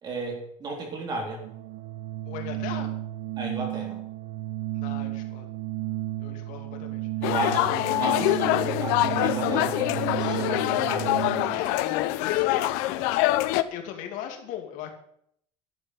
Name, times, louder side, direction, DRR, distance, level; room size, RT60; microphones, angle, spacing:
voice 1, 0.0-1.5 3.4-4.0 7.2-11.5, right 2 dB, 30° right, 2 dB, 3.6 m, -34 dB
Organ, 1.4-11.7, right 15 dB, 70° right, 0.9 m, -33 dB
voice 2, 2.3-2.9 4.7-5.5 6.2-7.1 11.4-14.9, left 10 dB, 65° left, 4 dB, 2.6 m, -38 dB
sound 1, 7.2-13.6, left 16 dB, 90° left, 0.9 m, -25 dB
12.0 x 8.1 x 9.2 m, 0.69 s
cardioid pair, 165°, 14 cm